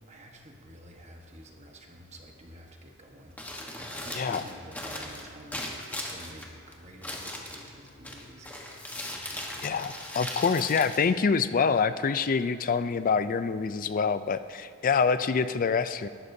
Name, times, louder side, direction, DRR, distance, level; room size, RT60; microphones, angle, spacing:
voice 1, 0.1-8.8 9.1-9.8, right 1 dB, 30° right, 1 dB, 1.2 m, -49 dB
Crumpling crinkling, 3.2-11.8, left 1 dB, 5° left, 1.1 m, -39 dB
voice 2, 9.6-16.1, left 5 dB, 40° left, 12 dB, 0.4 m, -26 dB
19.0 x 12.0 x 2.7 m, 2.1 s
head